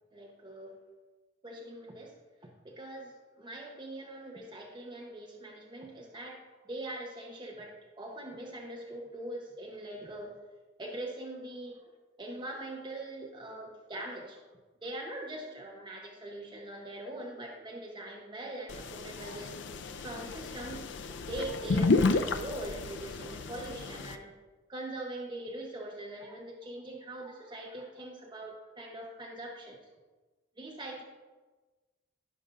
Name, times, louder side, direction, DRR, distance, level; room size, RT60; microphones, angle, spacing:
voice 1, 0.1-0.8 1.4-2.1 2.4-10.4 10.8-11.8 12.2-14.4 14.8-19.5 20.0-20.9 21.3-24.4 24.7-29.8 30.6-31.0, right 1 dB, 25° right, -1 dB, 0.9 m, -42 dB
sound 1, 18.7-24.1, left 3 dB, 70° left, 0.5 m, -31 dB
16.0 x 5.4 x 2.5 m, 1.3 s
head